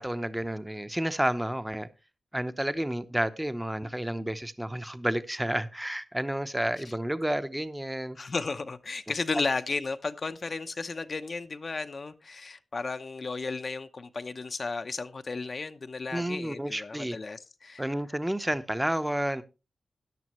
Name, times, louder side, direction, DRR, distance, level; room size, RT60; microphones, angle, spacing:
voice 1, 0.0-1.9 2.3-8.2 16.1-17.2 17.8-19.4, right 1 dB, 10° right, 0.8 m, -30 dB
voice 2, 8.2-17.9, left 4 dB, 45° left, 0.7 m, -34 dB
14.0 x 10.5 x 3.0 m
wide cardioid pair, 120°, 0 cm